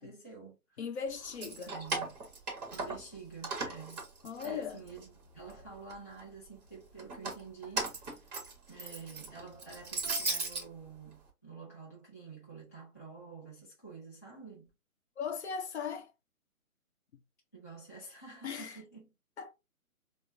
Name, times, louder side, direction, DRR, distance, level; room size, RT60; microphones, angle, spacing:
voice 1, 0.0-0.8 1.4-2.2 2.7-4.1 4.4-8.4 8.7-14.7 17.5-19.1, right 4 dB, 10° left, 0.5 m, -49 dB
voice 2, 0.8-1.7 4.2-4.8 15.2-16.1 18.4-18.8 19.4-19.5, left 6 dB, 50° left, 0.6 m, -38 dB
Keys jangling, 1.2-3.1 3.4-5.1 5.5-6.2 7.0-10.6, right 3 dB, 30° right, 1.0 m, -37 dB
4.8 x 2.0 x 2.7 m
hypercardioid pair, 150°, 43 cm